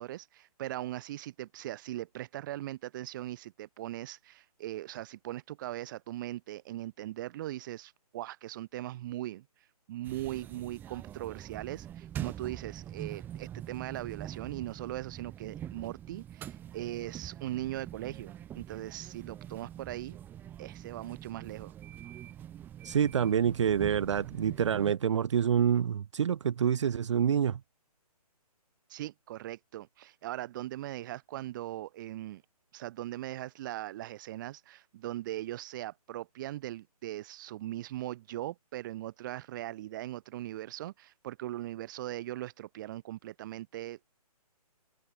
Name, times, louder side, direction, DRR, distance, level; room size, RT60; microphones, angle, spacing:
voice 1, 0.0-9.4 9.9-20.2 20.6-21.7 28.9-32.4 32.7-44.0, right 14 dB, 30° right, 4.3 m, -40 dB
sound 1, 10.0-24.9, right 11 dB, 10° right, 1.3 m, -44 dB
voice 2, 22.8-27.6, right 8 dB, 50° right, 1.4 m, -27 dB
open air
hypercardioid pair, 160°, 20 cm